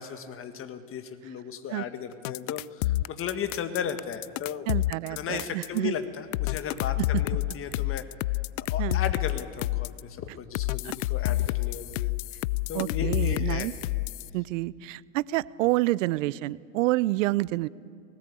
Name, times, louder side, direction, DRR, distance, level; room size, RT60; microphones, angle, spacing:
voice 1, 0.0-4.7 5.1-8.1 8.7-12.1 12.7-13.7, left 8 dB, 30° left, 9 dB, 1.7 m, -35 dB
sound 1, 2.2-5.8 6.3-10.0 10.5-14.3, left 18 dB, 65° left, 0.5 m, -28 dB
voice 2, 4.7-5.9 7.0-7.1 8.8-9.0 12.7-13.7 14.3-17.7, right 18 dB, 65° right, 21 dB, 0.7 m, -28 dB
20.5 x 18.5 x 8.4 m, 2.2 s
hypercardioid pair, 110°, 41 cm